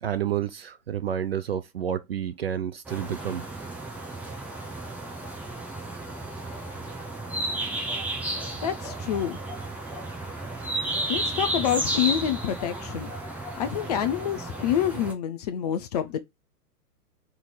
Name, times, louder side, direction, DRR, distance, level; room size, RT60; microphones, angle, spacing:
voice 1, 0.0-3.5, right 9 dB, 40° right, 0.5 m, -30 dB
sound 1, 2.8-15.1, right 1 dB, 5° right, 0.8 m, -33 dB
voice 2, 8.6-9.4 11.1-13.1 13.6-16.2, left 10 dB, 25° left, 0.7 m, -27 dB
5.5 x 3.8 x 4.7 m
figure-of-eight pair, 120°, 48 cm